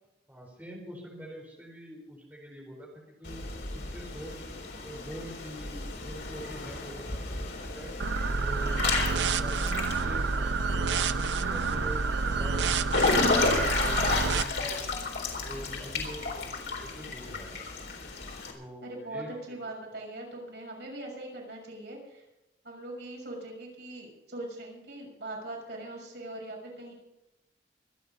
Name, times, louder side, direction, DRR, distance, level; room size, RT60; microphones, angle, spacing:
voice 1, 0.3-3.4 3.7-4.5 4.8-7.9 8.3-8.8 9.4-12.9 13.4-14.9 15.4-17.5 18.5-19.6 19.9-20.1, equal, 10° right, -3 dB, 4.3 m, -44 dB
Water / Splash splatter / Drip, 3.2-18.5, left 3 dB, 75° left, 3.9 m, -32 dB
sound 1, 8.0-14.4, right 4 dB, 85° right, 0.7 m, -28 dB
voice 2, 18.8-22.2 22.6-26.9, right 2 dB, 70° right, -1 dB, 6.3 m, -41 dB
25.0 x 9.5 x 5.4 m, 0.93 s
head